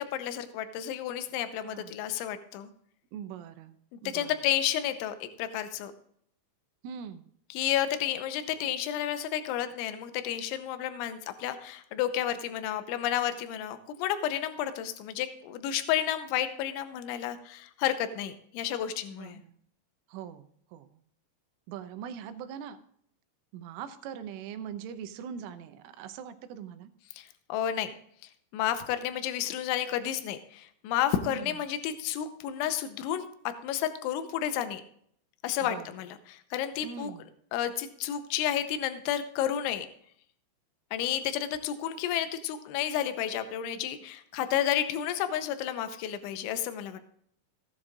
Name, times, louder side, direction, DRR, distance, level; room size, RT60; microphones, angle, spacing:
voice 1, 0.0-2.7 4.1-5.9 7.5-19.4 27.2-27.9 28.5-34.8 35.4-37.1 37.5-39.9 40.9-47.0, left 11 dB, 85° left, 10 dB, 3.0 m, -31 dB
voice 2, 1.6-2.0 3.1-4.4 6.8-7.2 19.1-19.6 20.1-21.0 21.7-22.8 23.5-26.9 31.2-31.6 35.6-35.9 36.8-37.3, right 8 dB, 85° right, 9 dB, 3.3 m, -42 dB
15.5 x 10.5 x 2.5 m, 0.66 s
omnidirectional pair, 5.8 m